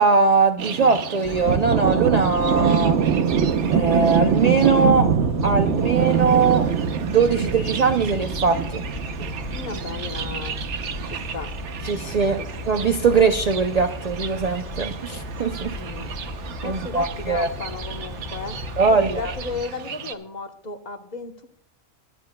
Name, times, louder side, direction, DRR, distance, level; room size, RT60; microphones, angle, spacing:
voice 1, 0.0-3.0 3.7-5.1 5.4-6.7 7.0-8.8 11.8-15.8 16.6-17.5 18.8-19.3, right 4 dB, 45° right, 0.5 m, -21 dB
Thunder, 0.6-20.1, right 7 dB, 85° right, 1.1 m, -26 dB
quietermorningbirds looopable, 1.2-19.6, left 2 dB, 65° left, 2.2 m, -35 dB
voice 2, 9.2-10.5 11.1-11.5 12.4-12.5 15.8-16.1 16.6-18.6 18.9-21.5, left 3 dB, 40° left, 1.1 m, -34 dB
23.5 x 11.0 x 2.2 m
omnidirectional pair, 1.2 m